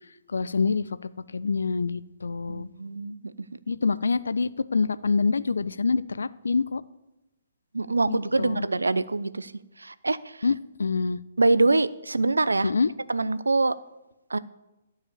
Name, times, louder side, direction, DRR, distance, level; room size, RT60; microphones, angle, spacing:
voice 1, 0.3-2.7 3.7-6.8 8.1-8.7 10.4-10.5 10.8-11.2 12.6-12.9, left 4 dB, 70° left, 16 dB, 0.4 m, -26 dB
voice 2, 2.5-3.3 7.7-9.5 9.8-10.4 11.4-12.7 13.1-13.7 14.3-14.4, right 3 dB, 75° right, 16 dB, 0.5 m, -24 dB
12.0 x 4.8 x 8.2 m, 0.96 s
figure-of-eight pair, 130°, 0 cm